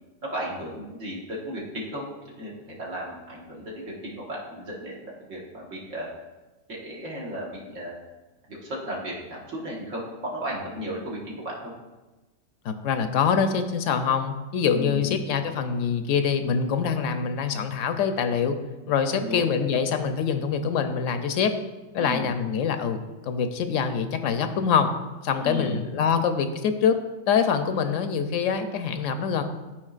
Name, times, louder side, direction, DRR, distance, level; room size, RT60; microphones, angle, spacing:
voice 1, 0.3-2.1 2.4-6.1 6.7-7.9 8.5-11.7 14.7-15.2 19.1-19.4 22.0-22.3 25.4-25.8, equal, 80° right, -4 dB, 1.8 m, -34 dB
voice 2, 12.6-18.6 18.9-21.5 21.9-23.0 23.3-24.9 25.2-27.0 27.3-29.4, left 6 dB, 90° left, 8 dB, 1.0 m, -24 dB
11.5 x 4.6 x 2.4 m, 1.1 s
omnidirectional pair, 1.3 m